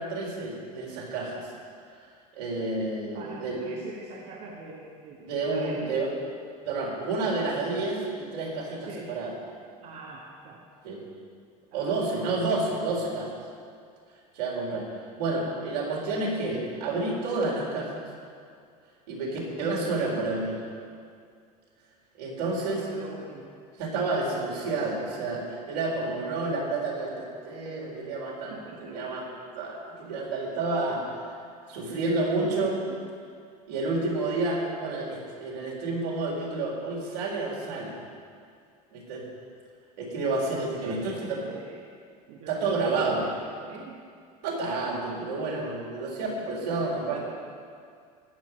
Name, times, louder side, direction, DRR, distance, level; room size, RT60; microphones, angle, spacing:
voice 1, 0.0-1.5 2.3-3.6 5.2-6.1 6.6-9.3 10.8-11.0 11.7-13.3 14.3-14.9 15.2-18.0 19.1-20.6 22.2-22.8 23.8-28.5 28.9-29.2 29.5-31.1 31.7-32.8 33.7-37.9 38.9-39.2 40.0-41.4 42.5-43.2 44.4-47.2, right 3 dB, 80° right, -3 dB, 4.2 m, -30 dB
voice 2, 3.1-5.9 8.8-9.2 9.8-10.6 11.7-12.2 19.3-19.5 22.6-23.6 26.1-26.2 28.5-29.1 31.9-32.0 32.4-33.0 40.8-41.8 42.3-44.0 47.1-47.2, right 3 dB, 60° right, -3 dB, 1.8 m, -44 dB
15.5 x 6.2 x 9.3 m, 2.2 s
hypercardioid pair, 80°, 20 cm